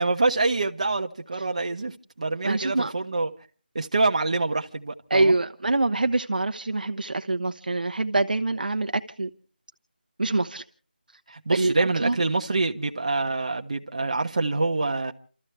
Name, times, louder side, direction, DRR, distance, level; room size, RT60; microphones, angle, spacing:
voice 1, 0.0-3.3 3.7-5.3 11.3-15.1, right 3 dB, 40° right, 1.1 m, -26 dB
voice 2, 2.4-2.9 5.1-9.3 10.2-10.6 11.5-12.2, right 2 dB, 60° right, 0.9 m, -25 dB
29.5 x 13.5 x 3.3 m
figure-of-eight pair, 175°, 6 cm